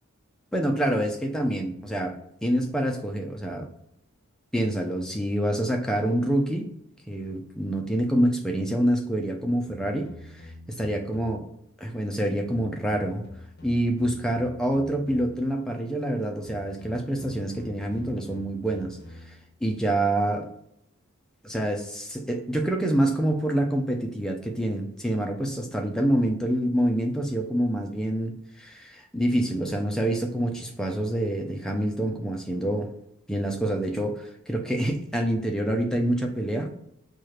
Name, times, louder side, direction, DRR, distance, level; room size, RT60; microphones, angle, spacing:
voice 1, 0.5-2.2 2.4-3.7 4.5-6.7 7.1-10.5 10.8-11.5 11.8-13.2 13.6-19.0 19.3-19.4 19.6-20.5 21.4-32.9 33.3-36.7, right 1 dB, 5° left, 2 dB, 0.5 m, -26 dB
sound 1, 9.6-11.6 12.5-15.6 16.4-19.6, left 1 dB, 50° left, 0.9 m, -46 dB
4.7 x 2.4 x 3.0 m, 0.76 s
head